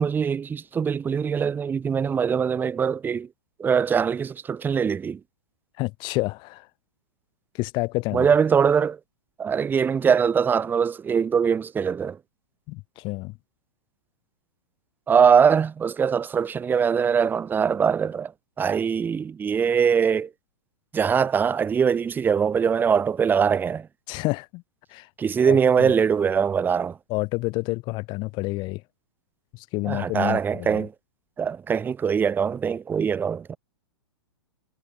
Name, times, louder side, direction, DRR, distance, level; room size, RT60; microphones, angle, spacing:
voice 1, 0.0-3.3 3.6-5.2 8.1-9.0 9.4-12.2 15.1-18.3 18.6-20.3 20.9-23.9 25.2-27.0 29.9-30.9 31.4-33.6, right 7 dB, 15° right, 1.2 m, -22 dB
voice 2, 5.8-6.7 7.5-8.3 12.7-13.4 24.1-24.6 24.9-25.1 25.4-25.9 27.1-28.8 29.5-30.9, left 23 dB, 35° left, 3.9 m, -29 dB
figure-of-eight pair, 110°, 14 cm